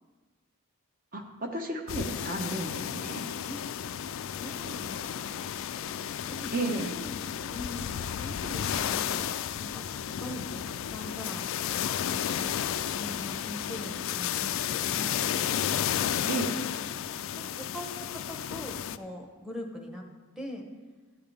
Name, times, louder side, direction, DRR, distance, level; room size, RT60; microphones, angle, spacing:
voice 1, 1.1-3.3 6.5-6.9 16.3-16.6, right 2 dB, 40° right, 3 dB, 1.1 m, -33 dB
sound 1, 1.9-19.0, left 9 dB, 60° left, 0.3 m, -32 dB
voice 2, 4.4-5.4 6.3-7.2 7.5-11.5 12.1-15.3 16.2-16.7 17.3-20.1 20.4-20.7, left 1 dB, 5° right, 1 dB, 1.0 m, -42 dB
13.0 x 8.5 x 3.4 m, 1.4 s
head